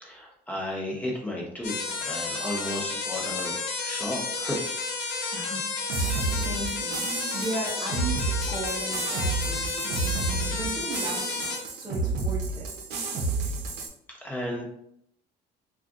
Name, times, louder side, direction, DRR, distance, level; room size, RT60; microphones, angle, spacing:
voice 1, 0.0-4.6 5.1-5.2 13.5-13.6 14.2-14.6, left 1 dB, 10° left, -3 dB, 1.0 m, -34 dB
sound 1, 1.6-11.6, left 4 dB, 75° left, 0.8 m, -32 dB
voice 2, 5.3-12.7, right 2 dB, 25° right, -4 dB, 0.8 m, -37 dB
sound 2, 5.9-13.9, right 3 dB, 70° right, 0.7 m, -30 dB
2.4 x 2.4 x 3.8 m, 0.72 s
cardioid pair, 110°, 17 cm